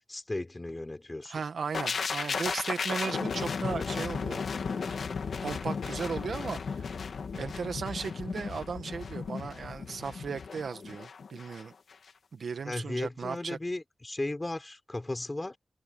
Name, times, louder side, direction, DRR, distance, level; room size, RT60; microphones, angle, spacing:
voice 1, 0.1-1.4 12.7-15.6, left 2 dB, 20° left, 3.8 m, -35 dB
voice 2, 1.2-4.5 4.7-5.0 5.4-7.0 7.3-11.7 12.3-13.6, right 5 dB, 75° right, 1.5 m, -36 dB
sound 1, 1.7-11.6 11.9-12.1, left 5 dB, 75° left, 2.3 m, -35 dB
wide cardioid pair, 150°, 0 cm